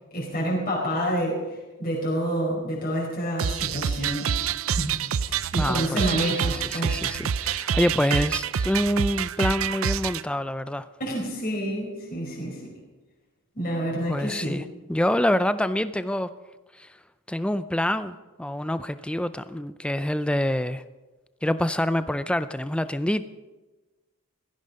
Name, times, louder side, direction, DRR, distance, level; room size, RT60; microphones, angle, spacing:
voice 1, 0.1-1.4 1.8-4.3 4.8-5.0 5.3-7.0 11.0-12.7 13.5-14.6, equal, 40° left, -4 dB, 4.7 m, -28 dB
sound 1, 3.4-10.2, right 7 dB, 65° right, 0.5 m, -27 dB
voice 2, 5.5-10.9 14.1-14.6 14.9-16.3 16.8-16.9 17.3-20.8 21.4-23.2, left 1 dB, 5° left, 13 dB, 0.4 m, -26 dB
16.5 x 14.5 x 5.3 m, 1.2 s
head